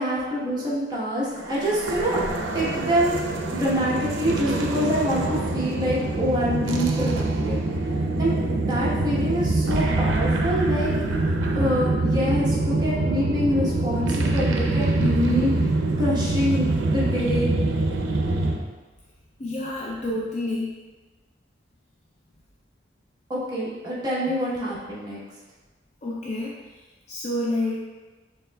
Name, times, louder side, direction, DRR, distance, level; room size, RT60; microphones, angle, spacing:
voice 1, 0.0-2.2 2.5-3.2 3.5-7.6 8.2-8.4 8.7-10.9 11.5-17.5 23.3-25.2, equal, 20° right, -7 dB, 1.0 m, -26 dB
sound 1, 1.4-18.6, right 2 dB, 90° right, 0.5 m, -25 dB
voice 2, 19.4-20.7 26.0-26.6 27.1-27.8, left 1 dB, 35° left, -4 dB, 0.4 m, -28 dB
6.7 x 3.1 x 2.2 m, 1.3 s
head